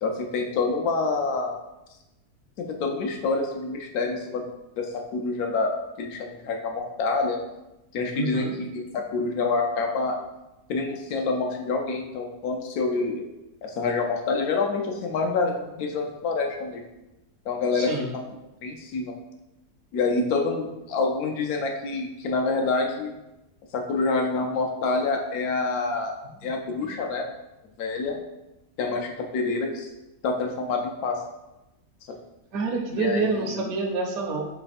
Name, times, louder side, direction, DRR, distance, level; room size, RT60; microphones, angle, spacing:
voice 1, 0.0-1.6 2.6-4.5 4.8-7.4 7.9-10.2 10.7-13.2 13.6-16.8 17.5-18.2 18.6-19.1 19.9-23.1 23.7-26.2 26.4-27.3 27.8-28.2 28.8-29.9 30.2-31.2 32.1-32.2 32.9-33.7, left 3 dB, 75° left, 2 dB, 1.1 m, -27 dB
voice 2, 8.1-8.5 17.7-18.1 32.5-34.5, right 3 dB, 70° right, 2 dB, 1.0 m, -27 dB
3.3 x 3.2 x 4.1 m, 0.95 s
omnidirectional pair, 1.7 m